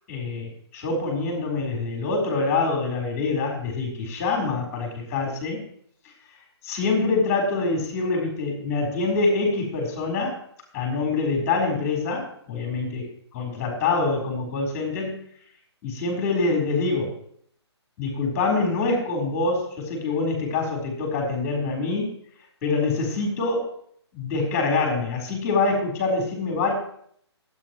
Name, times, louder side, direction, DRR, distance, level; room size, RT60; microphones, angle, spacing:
voice 1, 0.1-5.7 6.6-10.4 10.7-13.0 13.3-15.2 15.8-17.2 18.0-22.1 22.6-23.7 24.1-26.7, left 3 dB, 20° left, 0 dB, 3.9 m, -25 dB
22.0 x 8.4 x 3.0 m, 0.65 s
hypercardioid pair, 155°, 14 cm